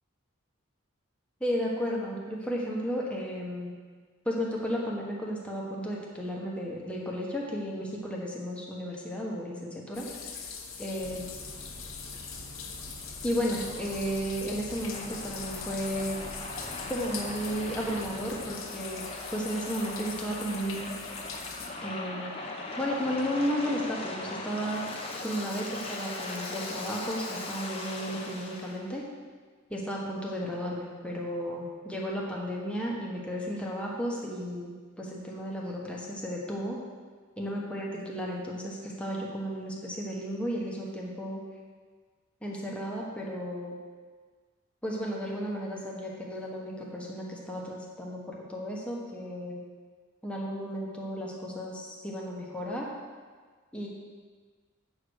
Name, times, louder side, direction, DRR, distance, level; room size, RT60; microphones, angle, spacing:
voice 1, 1.4-3.7 4.2-10.1 10.8-11.2 13.2-16.2 16.9-19.0 19.3-20.9 21.8-22.3 22.8-24.8 25.2-29.0 29.7-36.8 37.4-41.4 42.4-43.7 44.8-49.6 50.2-52.9 53.7-53.9, equal, 5° left, -3 dB, 1.3 m, -33 dB
sound 1, 9.9-21.7, left 6 dB, 70° left, 1.1 m, -42 dB
sound 2, 11.0-18.5, right 1 dB, 35° right, 0.8 m, -47 dB
Waves surf, 13.0-28.8, left 2 dB, 30° left, 1.0 m, -39 dB
8.5 x 5.0 x 6.4 m, 1.5 s
head